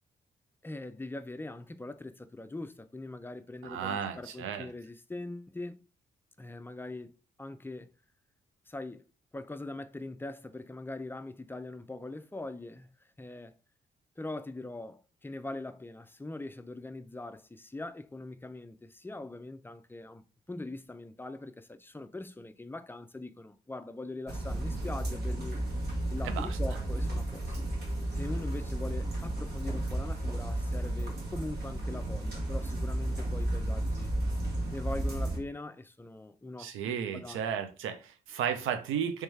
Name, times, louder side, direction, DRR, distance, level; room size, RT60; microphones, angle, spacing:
voice 1, 0.6-5.8 6.4-7.9 8.7-9.1 9.3-13.6 14.2-20.2 20.5-25.6 26.1-27.5 28.1-34.2 34.7-37.4, left 2 dB, 10° left, 0.4 m, -42 dB
voice 2, 3.6-4.7 26.2-26.6 36.6-39.2, right 8 dB, 75° right, 0.6 m, -34 dB
sound 1, 24.3-35.4, right 1 dB, 50° right, 1.3 m, -33 dB
3.1 x 3.1 x 3.2 m
hypercardioid pair, 45°, 21 cm